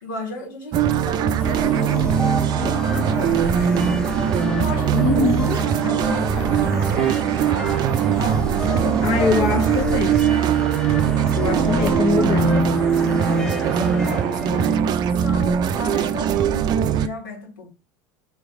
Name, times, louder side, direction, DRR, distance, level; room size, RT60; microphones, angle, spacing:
voice 1, 0.0-4.1 4.6-9.6 11.4-17.7, left 3 dB, 85° left, 2.0 m, -35 dB
sound 1, 0.7-17.1, right 8 dB, 45° right, 0.4 m, -21 dB
sound 2, 1.1-14.8, right 4 dB, 80° right, 0.7 m, -34 dB
sound 3, 1.4-14.9, equal, 5° left, 0.8 m, -30 dB
voice 2, 4.9-5.6 9.0-10.3 11.3-12.5, left 5 dB, 55° left, 0.7 m, -23 dB
4.0 x 3.2 x 3.6 m
hypercardioid pair, 95°, 10 cm